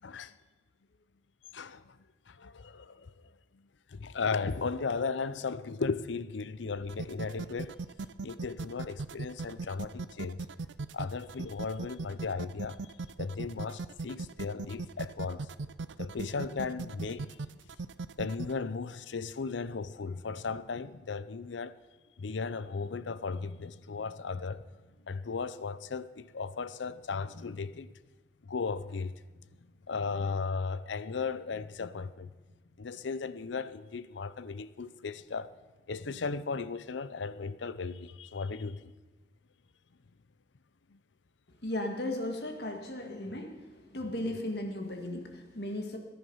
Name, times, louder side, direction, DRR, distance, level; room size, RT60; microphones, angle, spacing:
voice 1, 0.0-0.4 1.5-2.0 2.3-3.1 3.9-7.8 8.2-10.4 10.9-12.8 13.2-15.5 16.0-17.6 18.2-21.7 22.2-24.6 25.0-27.9 28.4-29.1 29.9-32.3 32.8-35.5 35.9-38.9 43.3-43.4 44.0-44.1, left 4 dB, 80° left, 0.6 m, -36 dB
sound 1, 6.8-18.5, right 3 dB, 80° right, 0.5 m, -38 dB
voice 2, 41.6-43.5 43.8-46.0, left 1 dB, 60° left, 2.0 m, -36 dB
19.5 x 10.5 x 5.5 m
head